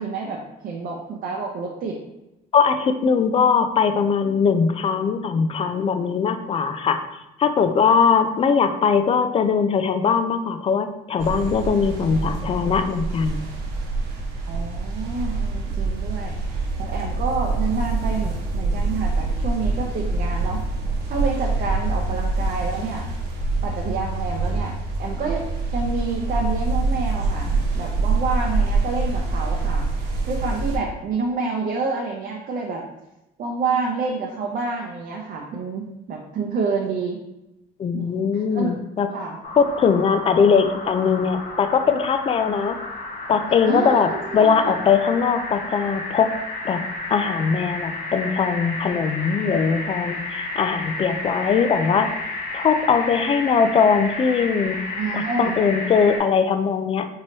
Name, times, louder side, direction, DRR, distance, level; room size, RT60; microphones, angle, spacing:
voice 1, 0.0-2.0 14.5-16.4 16.8-20.6 21.1-23.1 23.6-24.7 25.0-25.4 25.7-29.9 30.3-32.8 33.4-37.2 37.9-38.7 39.1-39.4 43.6-44.7 55.0-55.6, right 4 dB, 55° right, -1 dB, 0.6 m, -28 dB
voice 2, 2.5-7.0 7.4-13.4 37.8-39.1 39.6-42.8 43.3-46.3 46.6-52.1 52.5-54.8 55.1-57.1, left 6 dB, 35° left, 9 dB, 0.3 m, -20 dB
sound 1, 11.2-30.8, right 3 dB, 85° right, 1.0 m, -25 dB
sound 2, 39.4-56.2, left 2 dB, 60° left, 0.9 m, -32 dB
4.6 x 2.9 x 2.9 m, 0.92 s
cardioid pair, 110°, 17 cm